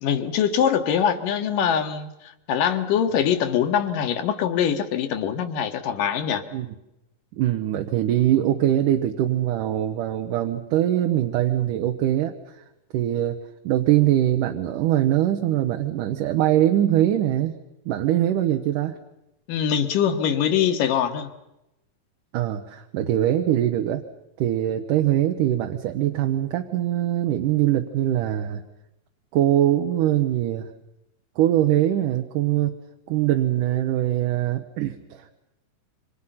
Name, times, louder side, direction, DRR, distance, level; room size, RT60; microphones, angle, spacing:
voice 1, 0.0-6.4 19.5-21.3, left 8 dB, 75° left, 3.1 m, -23 dB
voice 2, 7.4-12.3 12.9-13.4 13.6-17.5 17.9-19.0 22.3-24.0 24.4-28.6 29.3-30.7 31.4-32.8 33.1-35.3, right 12 dB, 75° right, 2.6 m, -22 dB
28.0 x 25.5 x 5.8 m
omnidirectional pair, 4.0 m